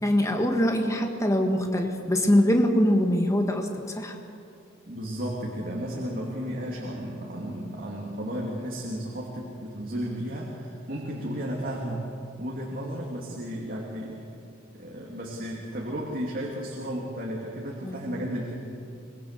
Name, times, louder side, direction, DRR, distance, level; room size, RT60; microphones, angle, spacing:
voice 1, 0.0-4.2 17.8-18.1, equal, 15° left, 3 dB, 1.7 m, -23 dB
voice 2, 4.8-14.3 14.7-18.5, equal, 45° right, -3 dB, 2.8 m, -33 dB
25.0 x 22.0 x 6.8 m, 2.6 s
head